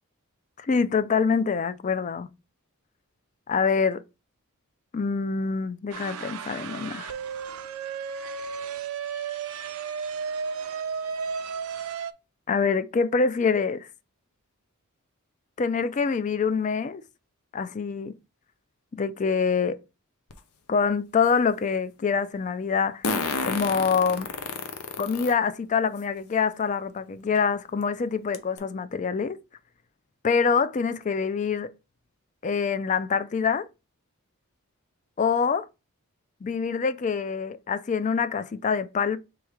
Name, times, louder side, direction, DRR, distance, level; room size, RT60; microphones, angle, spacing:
voice 1, 0.6-2.3 3.5-4.0 4.9-7.1 12.5-13.9 15.6-17.0 17.5-18.1 19.0-19.8 20.7-23.0 23.4-24.3 25.0-29.4 30.2-31.7 32.4-33.7 35.2-35.7 36.4-39.2, left 5 dB, 35° left, 0.3 m, -25 dB
sound 1, 5.9-12.1, right 6 dB, 70° right, 0.5 m, -33 dB
Fart, 20.3-20.4 23.0-25.3 26.0-26.1 27.4-27.5 27.8-27.9 28.3-28.6, left 4 dB, 80° left, 0.7 m, -30 dB
3.5 x 3.1 x 4.8 m
head